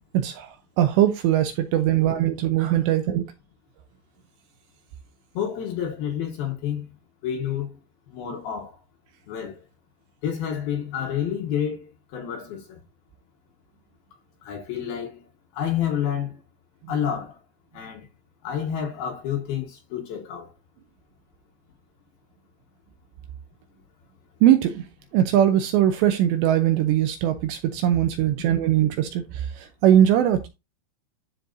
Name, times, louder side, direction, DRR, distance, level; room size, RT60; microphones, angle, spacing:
voice 1, 0.1-3.3 24.4-24.8 25.1-30.5, right 11 dB, 80° right, 2.7 m, -21 dB
voice 2, 5.3-6.9 7.2-7.8 8.1-8.8 9.3-9.6 10.2-12.8 14.4-15.3 15.5-16.4 16.9-17.4 17.7-18.1 18.4-20.5, left 9 dB, 70° left, 2.6 m, -29 dB
12.5 x 4.9 x 2.6 m
omnidirectional pair, 5.6 m